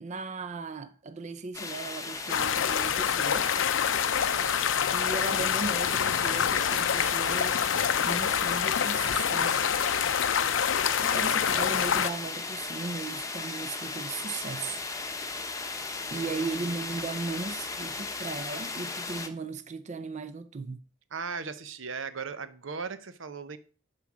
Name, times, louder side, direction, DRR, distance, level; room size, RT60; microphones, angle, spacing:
voice 1, 0.0-3.5 4.9-7.6 8.0-9.9 10.4-14.8 16.1-20.8, right 3 dB, 35° right, 0.5 m, -37 dB
sound 1, 1.5-19.3, left 3 dB, 15° left, 0.8 m, -37 dB
sound 2, 2.3-12.1, left 8 dB, 75° left, 0.5 m, -26 dB
voice 2, 4.1-4.5 16.1-17.0 21.1-23.6, right 5 dB, 80° right, 0.8 m, -38 dB
11.0 x 4.5 x 6.1 m
head